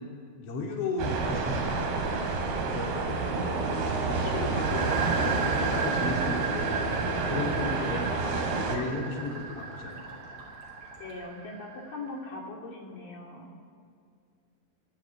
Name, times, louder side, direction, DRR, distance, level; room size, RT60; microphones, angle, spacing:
voice 1, 0.4-2.2 2.6-3.0 3.9-10.2, left 3 dB, 40° left, -2 dB, 3.3 m, -36 dB
sound 1, 1.0-8.8, right 3 dB, 80° right, 4.6 m, -29 dB
voice 2, 3.0-3.7 5.6-6.0 11.0-13.5, left 2 dB, 60° left, -1 dB, 4.6 m, -41 dB
sound 2, 4.4-11.1, right 1 dB, 35° right, 6.8 m, -49 dB
sound 3, 4.6-12.1, right 5 dB, 65° right, 1.3 m, -36 dB
27.5 x 26.0 x 4.7 m, 2.3 s
omnidirectional pair, 4.5 m